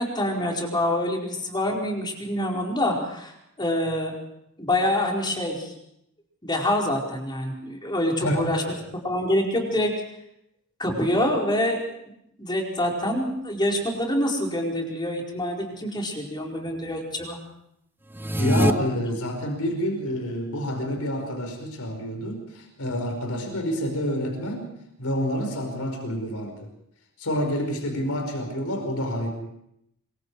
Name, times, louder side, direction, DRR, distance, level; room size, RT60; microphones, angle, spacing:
voice 1, 0.0-4.1 4.6-5.7 6.4-8.6 8.9-9.9 10.8-11.8 12.4-17.4, left 1 dB, 20° left, 0 dB, 4.7 m, -26 dB
voice 2, 8.2-8.7 18.4-24.7 25.0-26.7 27.2-29.3, equal, 75° left, 4 dB, 5.2 m, -28 dB
sound 1, 18.1-18.7, right 1 dB, 10° right, 0.8 m, -22 dB
26.0 x 23.5 x 4.8 m, 0.78 s
head